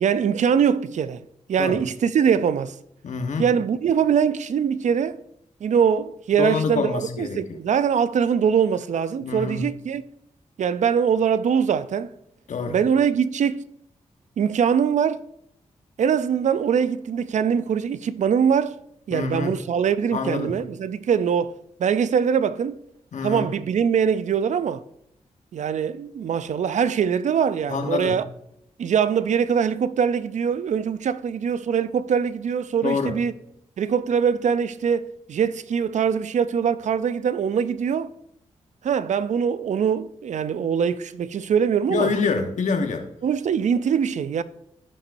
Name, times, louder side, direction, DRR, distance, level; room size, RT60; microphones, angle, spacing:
voice 1, 0.0-1.2 1.5-2.7 3.4-5.2 5.6-10.0 10.6-12.1 12.7-13.6 14.4-15.2 16.0-18.8 19.1-21.5 21.8-22.8 23.2-24.8 25.5-28.2 28.8-33.3 33.8-38.1 38.8-42.1 43.2-44.4, right 7 dB, 65° right, 0.5 m, -22 dB
voice 2, 3.0-3.5 6.4-7.4 9.2-9.6 12.5-12.7 19.1-19.6 20.1-20.5 23.1-23.5 27.7-28.1 32.8-33.1 41.9-43.1, left 4 dB, 70° left, 1.2 m, -26 dB
14.5 x 5.3 x 2.6 m
cardioid pair, 50°, 13 cm